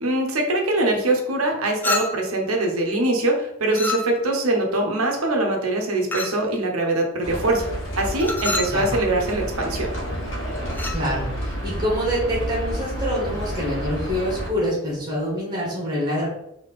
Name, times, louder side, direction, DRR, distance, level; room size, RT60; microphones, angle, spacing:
voice 1, 0.0-7.7 8.0-9.9, right 2 dB, 85° right, 1 dB, 0.9 m, -23 dB
Chink clink, 1.8-2.4 3.7-4.4 6.1-6.5 8.2-8.8 10.7-11.1, left 2 dB, 10° left, 0.3 m, -28 dB
Livestock farm animals working animals, 7.2-14.5, equal, 60° left, 1.2 m, -30 dB
voice 2, 10.9-11.3 11.6-16.3, equal, 20° right, -4 dB, 1.6 m, -25 dB
4.1 x 3.0 x 3.6 m, 0.80 s
head